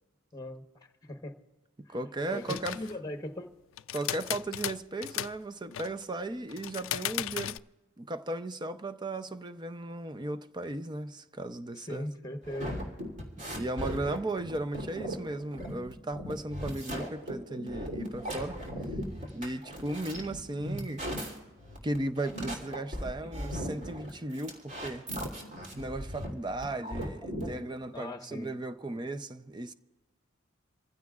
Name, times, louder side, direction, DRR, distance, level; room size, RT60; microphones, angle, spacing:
voice 1, 0.3-0.6 1.0-1.3 2.3-3.5 11.8-12.7 23.2-23.3 27.9-28.5, left 1 dB, 20° left, 1.1 m, -39 dB
voice 2, 1.9-2.8 3.9-7.6 8.0-12.1 13.4-18.6 19.3-21.0 21.8-25.1 25.7-29.7, right 2 dB, 20° right, 0.6 m, -36 dB
sound 1, 2.2-3.0 3.8-5.4 5.7-6.0 6.5-7.6, left 13 dB, 80° left, 0.4 m, -36 dB
sound 2, 12.4-27.6, equal, 40° right, 3.2 m, -38 dB
27.0 x 15.5 x 2.4 m
head